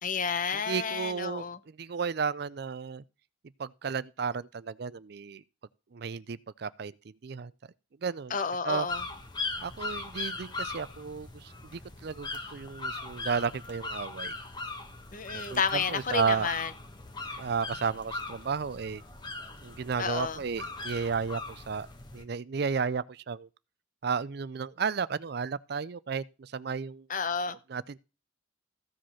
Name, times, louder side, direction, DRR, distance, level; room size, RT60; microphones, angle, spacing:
voice 1, 0.0-1.6 8.3-9.0 15.1-16.7 20.0-20.4 27.1-27.6, left 6 dB, 40° left, 0.8 m, -31 dB
voice 2, 0.7-3.0 3.6-5.4 5.9-7.5 8.0-8.4 8.6-8.9 9.6-14.3 15.3-16.5 17.4-19.0 19.6-21.9 22.1-23.5 24.0-27.1 27.7-28.0, right 5 dB, 55° right, 0.4 m, -33 dB
sound 1, 8.9-22.2, left 3 dB, 20° left, 1.4 m, -39 dB
15.0 x 5.2 x 5.6 m
head